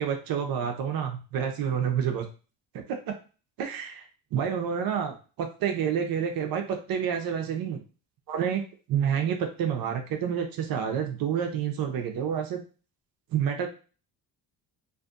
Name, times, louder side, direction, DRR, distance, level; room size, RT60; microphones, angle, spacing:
voice 1, 0.0-2.3 2.9-3.0 3.6-4.1 4.3-7.8 8.3-8.6 8.9-12.6 13.3-13.7, right 8 dB, 60° right, 4 dB, 0.6 m, -28 dB
2.5 x 2.5 x 2.4 m, 0.35 s
cardioid pair, 90°, 41 cm